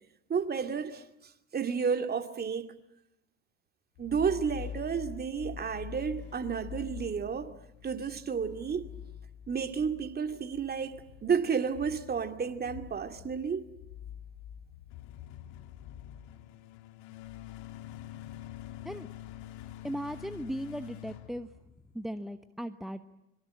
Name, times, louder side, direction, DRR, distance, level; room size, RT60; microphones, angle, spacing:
voice 1, 0.3-1.0 1.5-2.7 4.0-7.5 7.8-8.9 9.5-13.6, right 6 dB, 30° right, 2.4 m, -31 dB
sound 1, 4.0-22.1, left 10 dB, 60° left, 2.3 m, -46 dB
voice 2, 19.8-21.5 21.9-23.1, equal, ahead, 1.1 m, -37 dB
25.5 x 23.0 x 8.8 m
hypercardioid pair, 80°, 32 cm